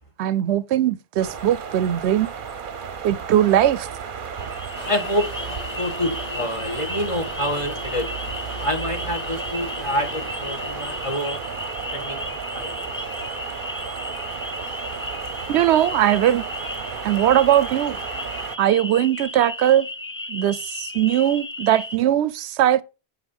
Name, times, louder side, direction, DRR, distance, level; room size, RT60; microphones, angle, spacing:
voice 1, 0.2-2.3 3.0-3.9 15.5-16.5 17.0-18.0 18.6-19.9 20.3-22.8, right 11 dB, 85° right, 0.9 m, -20 dB
sound 1, 1.2-18.6, right 6 dB, 55° right, 0.9 m, -34 dB
sound 2, 4.3-22.0, left 2 dB, 15° left, 0.5 m, -35 dB
Toilet flush, 4.7-11.8, left 2 dB, 75° left, 3.0 m, -39 dB
voice 2, 4.8-5.3 5.8-8.1 8.5-11.4 11.9-12.2 12.5-12.8, equal, 30° left, 1.4 m, -27 dB
9.6 x 5.5 x 5.4 m
omnidirectional pair, 1.1 m